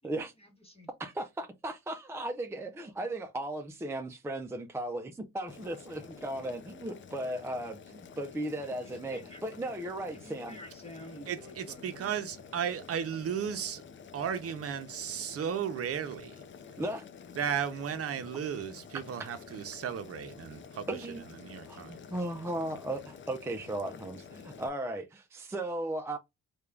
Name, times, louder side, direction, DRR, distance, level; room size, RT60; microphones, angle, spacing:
voice 1, 0.0-0.9 8.6-9.4 10.1-12.3, left 1 dB, 20° left, 1.1 m, -51 dB
voice 2, 1.0-10.6 16.8-17.1 19.2-19.3 20.9-21.2 21.7-26.2, right 1 dB, 10° right, 0.4 m, -36 dB
Boiling, 5.5-24.7, left 6 dB, 40° left, 0.5 m, -50 dB
voice 3, 11.3-13.8 14.1-16.4 17.3-21.0 21.4-22.0, right 8 dB, 50° right, 0.7 m, -35 dB
3.6 x 2.3 x 3.3 m
cardioid pair, 90°, 30 cm